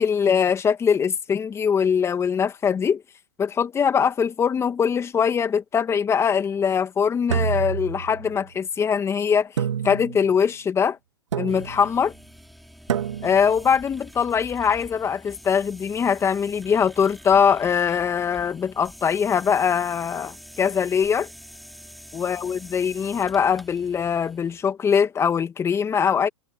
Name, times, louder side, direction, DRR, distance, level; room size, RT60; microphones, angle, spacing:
voice 1, 0.0-3.0 3.4-9.5 9.8-11.0 11.4-12.1 13.2-21.3 22.1-26.3, left 7 dB, 15° left, 2.1 m, -22 dB
sound 1, 7.3-8.5 9.6-10.4 11.3-11.9 12.9-13.6, right 8 dB, 80° right, 1.8 m, -28 dB
sound 2, 11.5-24.6, equal, ahead, 3.0 m, -46 dB
hypercardioid pair, 125°, 15 cm